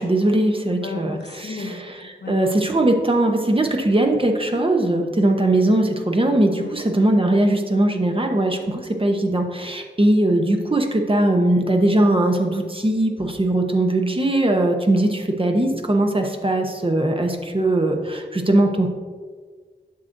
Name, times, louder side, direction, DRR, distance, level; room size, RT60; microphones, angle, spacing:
voice 1, 0.0-1.2 2.3-18.9, right 1 dB, 30° right, 3 dB, 0.8 m, -20 dB
voice 2, 0.6-2.4 6.5-6.8, left 3 dB, 65° left, 2 dB, 0.9 m, -34 dB
9.4 x 6.5 x 2.6 m, 1.5 s
wide cardioid pair, 75°, 19 cm